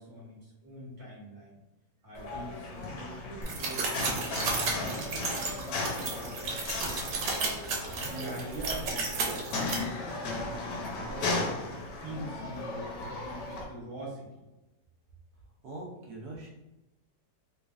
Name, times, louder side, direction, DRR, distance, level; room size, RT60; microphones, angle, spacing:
voice 1, 0.0-1.6 2.0-7.3 7.9-11.3 11.9-14.4, right 1 dB, 35° right, -7 dB, 1.1 m, -44 dB
sound 1, 2.1-13.6, left 2 dB, 80° left, 1.3 m, -36 dB
sound 2, 3.4-9.7, right 3 dB, 90° right, 1.4 m, -33 dB
voice 2, 15.6-16.5, right 2 dB, 65° right, -2 dB, 1.2 m, -42 dB
3.2 x 3.2 x 2.4 m, 1.0 s
omnidirectional pair, 1.9 m